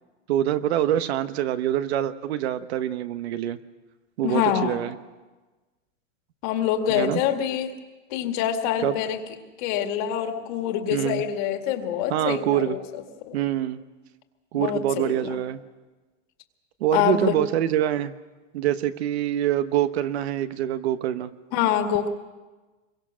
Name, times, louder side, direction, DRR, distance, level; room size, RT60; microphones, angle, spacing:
voice 1, 0.3-3.6 4.2-4.9 6.9-7.2 8.8-8.9 10.9-11.2 12.1-12.8 13.3-13.8 14.5-15.6 16.8-18.1 18.5-21.3, right 11 dB, 55° right, 11 dB, 1.2 m, -25 dB
voice 2, 4.2-4.8 6.4-7.8 8.1-9.2 9.6-12.8 13.3-13.4 14.5-15.4 16.9-17.4 21.5-22.1, left 10 dB, 40° left, 5 dB, 2.2 m, -25 dB
27.0 x 23.0 x 6.3 m, 1.2 s
supercardioid pair, 170°, 38 cm